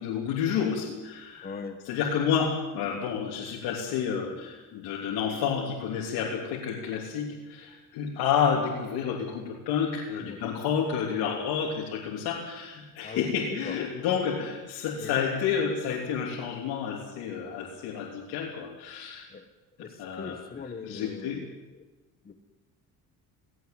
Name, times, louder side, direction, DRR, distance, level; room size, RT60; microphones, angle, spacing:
voice 1, 0.0-1.5 1.8-19.2 20.0-20.4 20.8-21.4, left 7 dB, 85° left, -3 dB, 3.2 m, -30 dB
voice 2, 1.4-1.8 10.2-10.4 13.0-13.8 15.0-15.2 19.3-19.5 19.8-21.8 22.2-22.4, left 5 dB, 25° left, 7 dB, 1.4 m, -41 dB
17.5 x 17.5 x 9.2 m, 1.2 s
cardioid pair, 125°, 37 cm